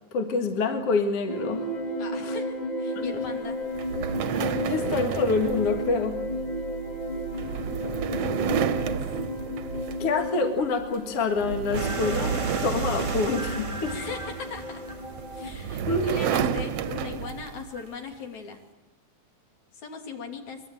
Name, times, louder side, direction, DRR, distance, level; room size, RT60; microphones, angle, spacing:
voice 1, 0.1-1.7 2.2-2.4 3.0-3.1 4.3-6.2 10.0-13.9 15.9-16.3, left 3 dB, 55° left, 6 dB, 2.6 m, -27 dB
sound 1, 1.3-15.5, left 1 dB, 20° left, 1.1 m, -33 dB
voice 2, 2.0-3.6 8.5-9.0 13.8-15.0 15.3-18.6 19.7-20.6, left 5 dB, 70° left, 4 dB, 3.8 m, -39 dB
sound 2, 3.7-10.3 10.7-10.9 11.4-14.4 15.2-17.6, right 7 dB, 65° right, 1.8 m, -31 dB
sound 3, 11.7-17.9, right 2 dB, 30° right, 0.5 m, -37 dB
24.5 x 22.0 x 9.1 m, 1.1 s
omnidirectional pair, 3.4 m